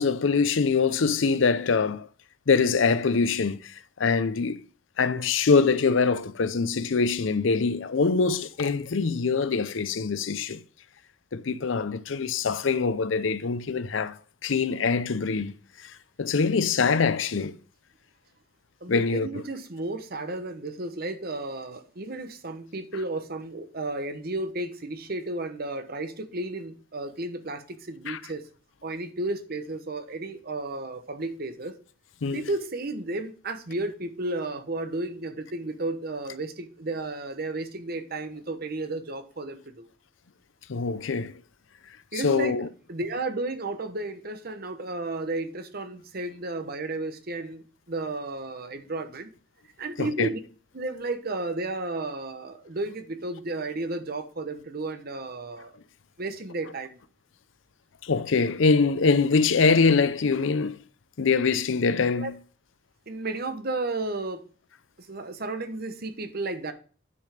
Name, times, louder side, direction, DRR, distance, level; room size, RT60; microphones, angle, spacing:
voice 1, 0.0-2.1 2.5-3.7 4.0-4.6 5.0-10.6 11.3-14.2 14.4-15.5 15.8-15.9 16.2-17.6 18.9-19.4 28.1-28.2 32.2-32.4 40.7-41.3 42.2-42.7 50.0-50.3 58.0-60.8 61.2-62.3, left 4 dB, 75° left, 0.6 m, -24 dB
voice 2, 18.8-28.4 28.8-31.7 32.3-39.9 42.1-42.6 42.9-49.3 49.8-50.4 50.7-55.7 56.2-57.0 62.2-62.3 63.1-64.4 65.0-66.7, right 2 dB, 50° right, 1.0 m, -33 dB
9.5 x 5.2 x 5.0 m
head